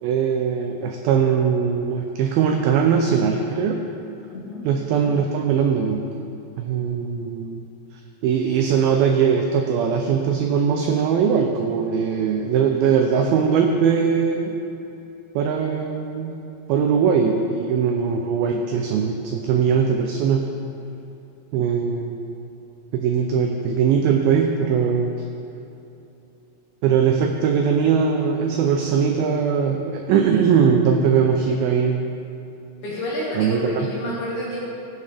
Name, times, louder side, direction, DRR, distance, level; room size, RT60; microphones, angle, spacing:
voice 1, 0.0-3.8 4.6-6.1 6.6-7.7 8.2-14.6 15.4-16.4 16.7-20.5 21.5-22.2 22.9-25.1 26.8-32.0 33.4-33.9, right 6 dB, 85° right, 3 dB, 2.1 m, -20 dB
voice 2, 32.8-34.6, left 1 dB, 55° left, -6 dB, 2.6 m, -29 dB
15.5 x 7.1 x 3.4 m, 2.8 s
omnidirectional pair, 4.9 m